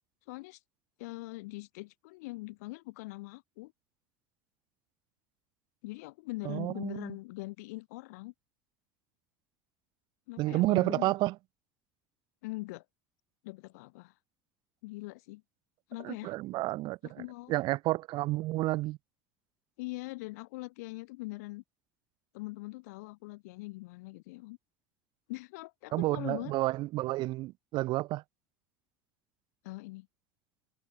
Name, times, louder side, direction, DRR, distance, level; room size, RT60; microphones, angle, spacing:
voice 1, 0.3-0.6 1.0-3.7 5.8-8.3 10.3-11.1 12.4-12.9 13.4-14.1 14.8-15.4 15.9-16.3 17.0-17.6 19.8-21.6 22.3-24.6 25.3-26.5 29.6-30.1, left 23 dB, 75° left, 6.8 m, -42 dB
voice 2, 6.4-7.1 10.4-11.3 16.0-19.0 25.9-28.2, right 18 dB, 60° right, 3.9 m, -30 dB
hypercardioid pair, 80°, 9 cm